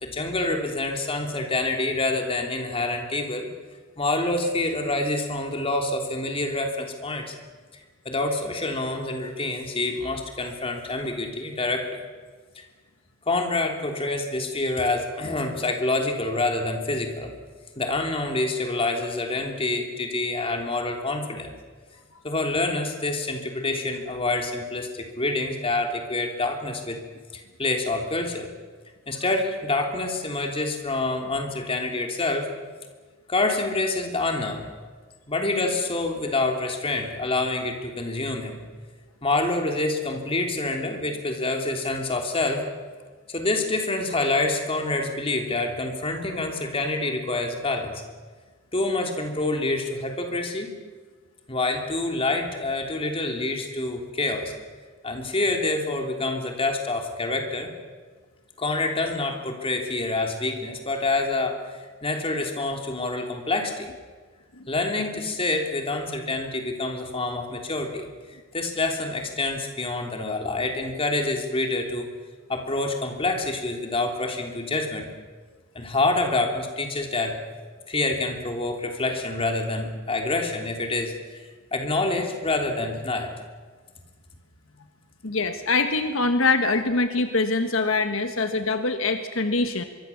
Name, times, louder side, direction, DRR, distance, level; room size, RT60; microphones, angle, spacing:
voice 1, 0.0-3.5 4.0-7.3 8.0-12.0 12.5-12.6 13.3-17.3 17.8-21.5 22.2-27.0 27.3-28.5 29.1-32.5 33.3-34.6 35.3-38.6 39.2-42.7 43.3-48.0 48.7-50.7 51.5-54.5 55.0-57.7 58.6-63.9 64.7-68.0 68.5-72.1 72.5-75.1 75.7-77.4 77.9-83.3, left 2 dB, 25° left, 3 dB, 3.3 m, -27 dB
voice 2, 85.2-89.8, left 3 dB, 70° left, 7 dB, 1.5 m, -24 dB
25.0 x 23.5 x 7.2 m, 1.4 s
head